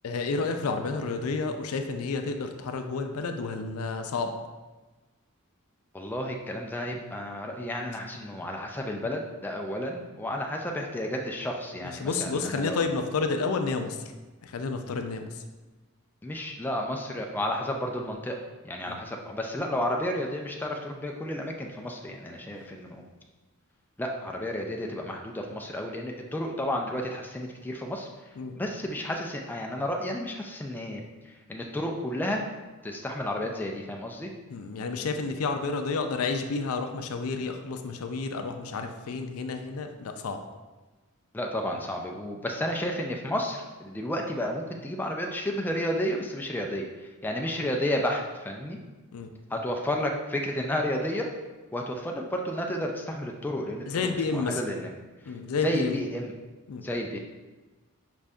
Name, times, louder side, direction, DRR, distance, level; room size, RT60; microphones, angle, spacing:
voice 1, 0.0-4.3 11.8-14.1 14.4-15.4 18.8-19.0 28.4-28.6 34.5-40.4 49.1-49.3 53.9-54.6 55.3-56.0 56.7-56.8, left 4 dB, 75° left, 6 dB, 0.4 m, -30 dB
voice 2, 5.9-12.8 16.2-18.4 18.6-23.0 24.0-28.1 28.6-32.4 32.8-34.3 41.3-48.8 49.5-51.3 51.7-53.9 54.3-54.9 55.2-55.3 55.6-56.3 56.8-57.2, left 1 dB, 10° left, 1 dB, 0.3 m, -32 dB
5.3 x 2.5 x 3.5 m, 1.2 s
head